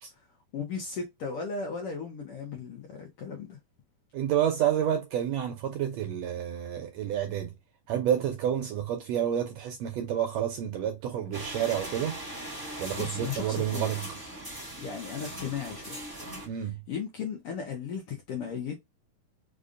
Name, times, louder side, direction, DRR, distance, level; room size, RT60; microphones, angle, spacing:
voice 1, 0.5-3.6 13.0-14.0 14.8-16.0 16.5-18.8, left 6 dB, 70° left, 1.4 m, -36 dB
voice 2, 4.1-7.5 7.9-12.2 12.8-14.0 16.5-16.8, right 10 dB, 75° right, 1.6 m, -29 dB
sound 1, 11.3-16.5, right 1 dB, 25° right, 0.4 m, -40 dB
5.1 x 2.4 x 2.5 m
omnidirectional pair, 3.5 m